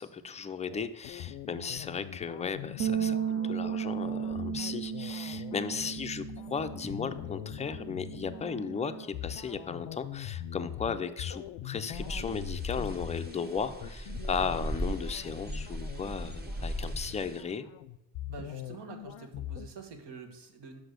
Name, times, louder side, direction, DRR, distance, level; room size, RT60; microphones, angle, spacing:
voice 1, 0.0-17.7, left 5 dB, 15° left, 9 dB, 0.4 m, -36 dB
sound 1, 0.7-19.7, left 12 dB, 85° left, 0.5 m, -42 dB
sound 2, 2.8-9.0, right 8 dB, 40° right, 0.5 m, -35 dB
sound 3, 11.9-17.4, equal, 20° right, 0.9 m, -38 dB
voice 2, 18.3-20.8, right 5 dB, 70° right, 6 dB, 1.3 m, -46 dB
6.1 x 5.1 x 6.5 m, 0.94 s
cardioid pair, 110°, 44 cm